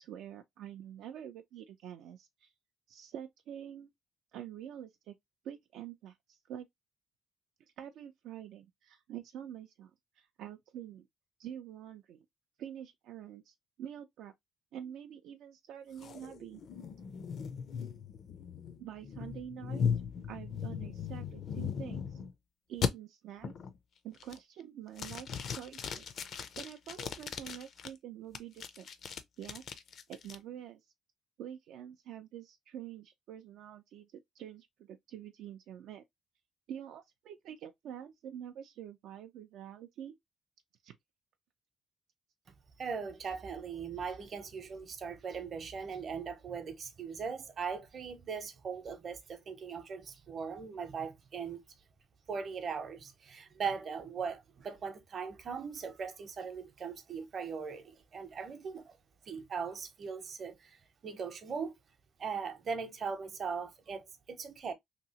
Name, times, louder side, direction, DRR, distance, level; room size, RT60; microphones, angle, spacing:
voice 1, 0.0-2.5 2.9-3.9 4.3-5.2 5.4-6.7 7.8-9.9 10.2-11.1 11.4-12.2 12.6-14.3 14.7-16.6 18.8-19.9 20.3-22.2 22.7-23.5 24.0-26.0 26.6-28.9 29.4-29.8 30.1-30.8 31.4-36.0 36.7-40.2 40.8-41.0, right 10 dB, 80° right, 0.4 m, -46 dB
sound 1, 16.0-22.3 22.8-22.9 23.4-23.8 24.2-24.6 25.0-27.9 28.3-30.4, left 7 dB, 55° left, 0.4 m, -38 dB
voice 2, 42.8-51.6 52.3-59.0 59.2-61.7 62.2-64.7, right 6 dB, 45° right, 0.7 m, -39 dB
2.9 x 2.7 x 2.7 m
cardioid pair, 120°, 0 cm